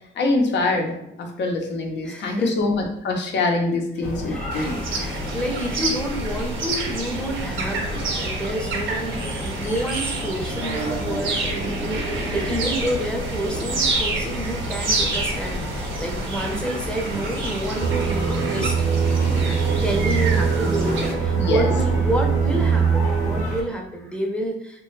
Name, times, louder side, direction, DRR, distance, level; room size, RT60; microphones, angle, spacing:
voice 1, 0.2-4.8 21.3-21.7, left 2 dB, 60° left, 2 dB, 0.7 m, -24 dB
voice 2, 2.0-2.5 4.0-19.2 19.7-24.8, right 1 dB, 5° left, 1 dB, 0.7 m, -29 dB
sound 1, 4.0-23.6, left 1 dB, 35° left, 0.9 m, -31 dB
sound 2, 4.5-21.1, right 3 dB, 80° right, 0.8 m, -29 dB
sound 3, 17.8-23.5, right 6 dB, 55° right, 0.4 m, -22 dB
3.1 x 2.2 x 3.1 m, 0.75 s
cardioid pair, 90°, 20 cm